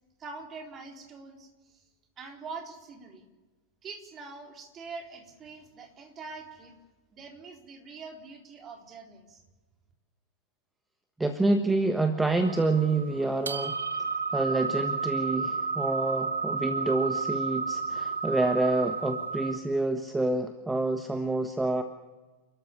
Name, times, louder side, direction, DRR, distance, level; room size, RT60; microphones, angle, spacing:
voice 1, 0.2-1.8 2.2-3.3 3.8-6.7 7.1-9.4, right 4 dB, 25° right, 2 dB, 4.0 m, -44 dB
voice 2, 11.2-13.8 14.3-21.8, right 2 dB, 5° right, 7 dB, 1.4 m, -27 dB
sound 1, 12.4-19.6, right 5 dB, 70° right, 1.0 m, -32 dB
29.5 x 13.5 x 8.6 m, 1.2 s
figure-of-eight pair, 90°, 0 cm